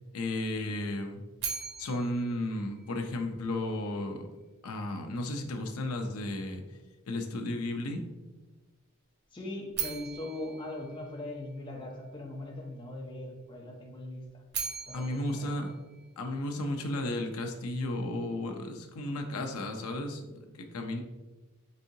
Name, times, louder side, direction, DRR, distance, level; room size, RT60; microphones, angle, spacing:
voice 1, 0.1-1.2 1.8-4.3 4.6-6.6 7.1-8.0 14.9-15.7 16.2-20.2 20.5-21.0, left 1 dB, 90° left, 4 dB, 0.5 m, -33 dB
sound 1, 1.4-3.5 9.7-11.9 14.2-16.7, right 7 dB, 50° right, 0.6 m, -40 dB
voice 2, 9.3-14.4 14.9-15.6, left 1 dB, 20° left, -1 dB, 0.6 m, -40 dB
4.1 x 3.6 x 2.7 m, 1.2 s
head